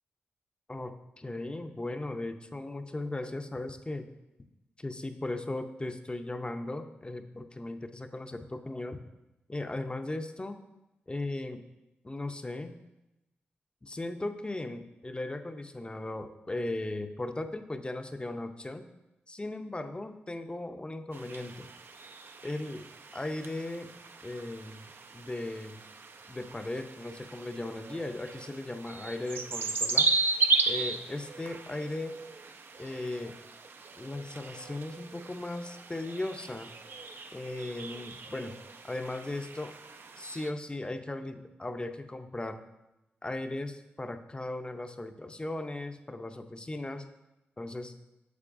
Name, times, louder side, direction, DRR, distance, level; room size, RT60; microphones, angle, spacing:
voice 1, 0.7-4.1 4.8-9.0 9.5-10.6 11.1-11.6 12.0-12.7 13.8-18.9 19.3-21.7 22.4-22.9 23.1-23.9 24.2-25.9 26.3-30.1 30.7-32.1 32.8-33.3 34.0-36.7 37.3-38.5 38.8-39.7 40.2-42.6 43.2-47.1 47.6-47.9, left 2 dB, 25° left, 8 dB, 0.6 m, -37 dB
sound 1, 21.1-40.5, right 4 dB, 55° right, 0.5 m, -36 dB
8.4 x 6.7 x 2.6 m, 0.95 s
supercardioid pair, 50°, 4 cm